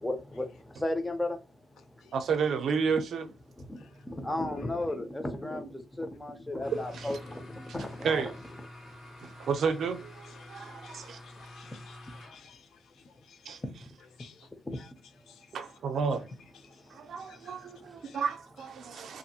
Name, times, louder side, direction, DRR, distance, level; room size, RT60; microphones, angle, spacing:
voice 1, 0.0-2.1 2.9-3.0 3.5-8.3 8.8-9.0 9.3-9.4 11.6-11.7 13.6-14.3 14.6-15.4 16.6-18.2 18.8-19.2, left 1 dB, 10° left, 0.5 m, -37 dB
voice 2, 2.1-3.2 6.9-7.1 8.0-8.3 9.2-11.2 13.5-13.6 15.5-16.3 16.9-19.2, right 5 dB, 65° right, 0.5 m, -31 dB
sound 1, 6.6-12.6, left 1 dB, 55° left, 1.2 m, -48 dB
voice 3, 10.2-13.6 14.2-14.9 15.3-15.8 16.5-18.7 18.9-19.1, left 6 dB, 90° left, 0.5 m, -57 dB
2.6 x 2.5 x 2.7 m
cardioid pair, 140°, 0 cm